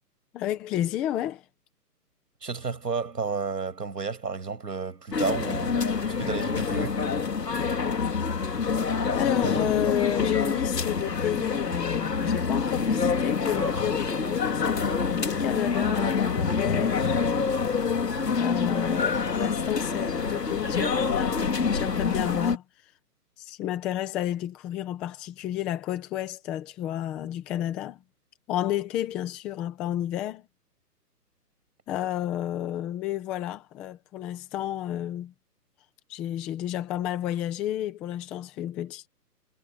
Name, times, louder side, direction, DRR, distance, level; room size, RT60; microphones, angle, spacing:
voice 1, 0.3-1.4 9.1-17.2 18.3-22.6 23.4-28.0 28.5-30.4 31.9-35.3 36.1-39.1, left 12 dB, ahead, 0.5 m, -31 dB
voice 2, 2.4-7.0, right 5 dB, 75° right, 7.6 m, -32 dB
sound 1, 5.1-22.6, left 5 dB, 80° left, 2.9 m, -26 dB
figure-of-eight pair, 135°, 48 cm